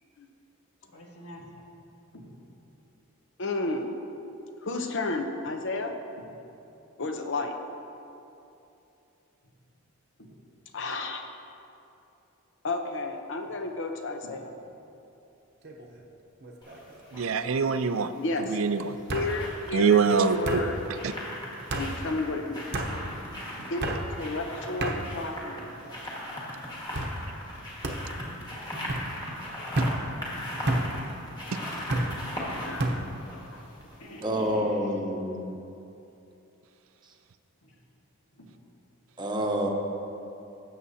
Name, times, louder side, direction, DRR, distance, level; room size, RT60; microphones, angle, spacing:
voice 1, 0.9-1.6 2.1-2.3 6.2-6.3 10.2-10.3 14.2-14.4 26.3-26.4 30.3-30.4 33.5-34.9 37.6-37.7 38.4-38.5, left 1 dB, 90° left, -1 dB, 1.6 m, -46 dB
voice 2, 3.4-3.9 4.6-5.9 7.0-7.5 10.7-11.2 12.6-14.5 18.1-18.6 19.1-20.8 21.7-22.6 23.7-25.6 32.6-33.1 33.5-33.6, left 3 dB, 55° left, 5 dB, 0.8 m, -32 dB
sound 1, 15.6-16.0 16.4-17.0 18.0-18.1 19.1-19.3 20.4-20.6 21.7-21.9 22.7-22.9 23.8-24.0 24.8-25.0 25.7-26.2 26.9-27.1 27.8-28.0 28.9-29.1 29.7-30.0 30.7-30.9 31.9-32.1 32.8-33.0, right 1 dB, 50° right, 0.9 m, -29 dB
sound 2, 16.6-17.3 18.6-34.1 34.4-34.5, equal, 20° left, 1.8 m, -39 dB
voice 3, 17.1-18.1 18.5-19.0 19.7-20.6 21.0-21.1 31.5-31.6, right 4 dB, 65° right, 11 dB, 0.5 m, -24 dB
voice 4, 34.2-35.4 39.2-39.7, equal, 20° right, 0 dB, 0.9 m, -28 dB
17.0 x 7.3 x 2.8 m, 2.8 s
head